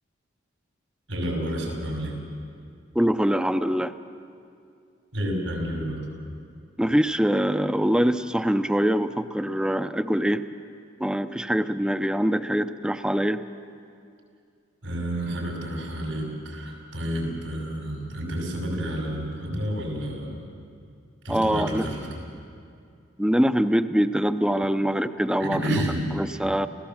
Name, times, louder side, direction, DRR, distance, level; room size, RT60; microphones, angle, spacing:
voice 1, 1.1-2.2 5.1-6.1 14.8-20.5 21.2-22.3 25.4-26.1, equal, 90° right, 0 dB, 5.8 m, -30 dB
voice 2, 3.0-4.0 6.8-10.4 11.0-13.4 21.3-21.8 23.2-25.8 26.1-26.7, equal, 5° right, 10 dB, 0.5 m, -23 dB
28.0 x 16.5 x 7.3 m, 2.4 s
head